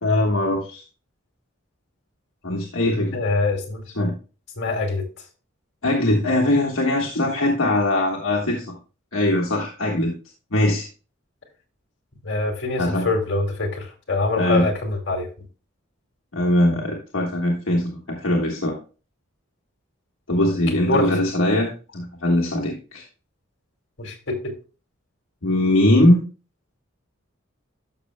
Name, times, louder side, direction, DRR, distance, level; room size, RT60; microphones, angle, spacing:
voice 1, 0.0-0.8 2.4-3.2 4.0-4.1 5.8-8.7 9.1-10.1 10.5-10.9 12.8-13.1 14.4-14.6 16.3-18.8 20.3-23.0 25.4-26.3, left 1 dB, 75° left, -2 dB, 1.5 m, -21 dB
voice 2, 3.1-3.8 4.6-5.0 12.2-15.3 20.7-21.1 24.0-24.5, left 3 dB, 55° left, 1 dB, 2.4 m, -24 dB
12.5 x 6.1 x 2.2 m, 0.34 s
head